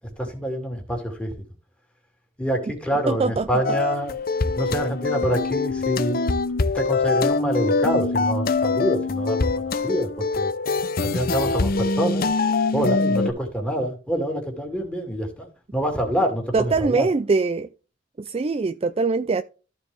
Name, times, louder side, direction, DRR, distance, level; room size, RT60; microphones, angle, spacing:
voice 1, 0.2-1.3 2.4-4.1 4.5-6.2 6.7-10.1 10.4-10.5 11.0-12.3 12.7-17.1, equal, 5° left, 2.5 m, -26 dB
voice 2, 3.1-3.5 16.5-17.7 18.2-19.4, right 4 dB, 30° right, 0.4 m, -22 dB
sound 1, 3.6-13.3, left 3 dB, 50° left, 0.7 m, -23 dB
14.0 x 4.7 x 3.4 m
head